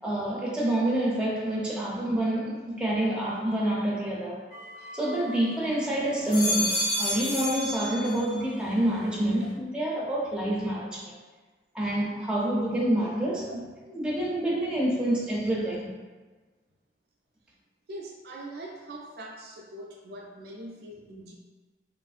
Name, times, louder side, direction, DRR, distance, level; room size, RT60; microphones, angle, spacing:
voice 1, 0.0-4.4 4.9-11.1 11.7-15.9, right 1 dB, 5° right, -6 dB, 0.5 m, -27 dB
sound 1, 4.5-5.6 6.1-8.5 8.9-9.5, left 1 dB, 40° left, 0.7 m, -31 dB
voice 2, 17.9-21.3, right 1 dB, 60° right, -1 dB, 0.4 m, -42 dB
3.0 x 2.5 x 2.4 m, 1.3 s
head